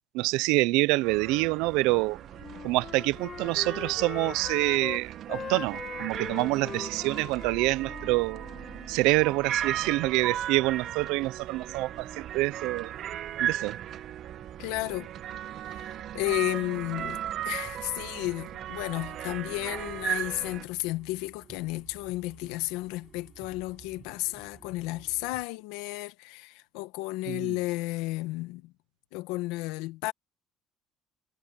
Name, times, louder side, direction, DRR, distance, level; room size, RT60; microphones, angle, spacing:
voice 1, 0.1-2.2 2.6-8.5 8.9-12.9 13.4-13.8 27.3-27.6, right 21 dB, 80° right, 0.8 m, -26 dB
sound 1, 1.0-20.7, right 11 dB, 55° right, 1.5 m, -37 dB
Wind instrument woodwind instrument, 2.3-5.0 5.3-8.9, left 7 dB, 35° left, 0.6 m, -41 dB
sound 2, 7.3-25.4, right 7 dB, 35° right, 6.2 m, -53 dB
voice 2, 14.6-15.1 15.6-28.7 29.1-30.1, left 19 dB, 85° left, 1.5 m, -33 dB
cardioid pair, 110°, 0 cm